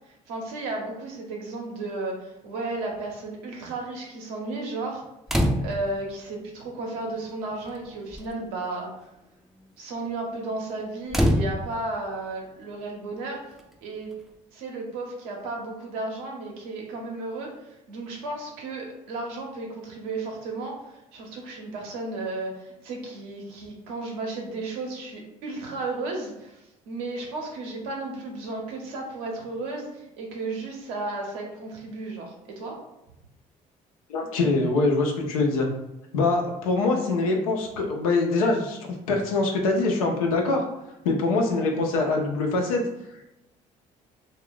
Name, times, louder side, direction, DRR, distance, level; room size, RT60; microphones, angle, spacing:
voice 1, 0.3-5.0 5.6-8.9 9.8-13.4 13.8-14.1 14.5-32.8, right 2 dB, 80° right, 0 dB, 0.9 m, -34 dB
sound 1, 5.3-6.0 7.1-7.2 7.5-7.8 8.1-8.4 11.1-12.0 13.6-13.7, equal, ahead, 0.5 m, -24 dB
voice 2, 34.1-35.7 36.1-40.6 41.0-42.8, left 3 dB, 90° left, 2 dB, 0.6 m, -24 dB
2.3 x 2.3 x 3.7 m, 0.90 s
hypercardioid pair, 60°, 18 cm